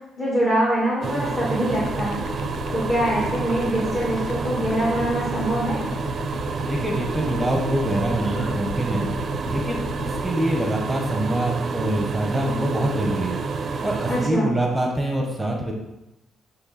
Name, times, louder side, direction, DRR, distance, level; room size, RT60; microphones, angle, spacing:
voice 1, 0.2-2.2 2.7-5.9 14.1-14.5, right 1 dB, 20° left, -7 dB, 2.0 m, -24 dB
sound 1, 1.0-14.3, right 4 dB, 50° right, 0.6 m, -29 dB
sound 2, 1.7-10.3, left 8 dB, 90° left, 0.4 m, -35 dB
voice 2, 6.6-9.1 9.4-9.9 10.2-13.4 13.8-15.7, right 1 dB, 10° right, 1 dB, 1.1 m, -25 dB
9.2 x 3.2 x 4.2 m, 0.95 s
cardioid pair, 90°, 0 cm